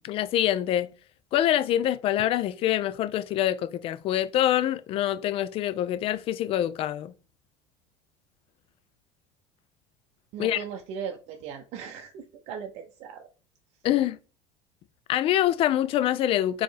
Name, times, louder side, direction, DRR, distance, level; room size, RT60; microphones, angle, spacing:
voice 1, 0.0-0.9 1.3-7.1 10.4-10.6 13.8-14.2 15.1-16.6, left 12 dB, 45° left, 0.4 m, -25 dB
voice 2, 10.3-13.3, right 7 dB, 55° right, 0.5 m, -38 dB
4.2 x 2.9 x 3.3 m
supercardioid pair, 100°, 13 cm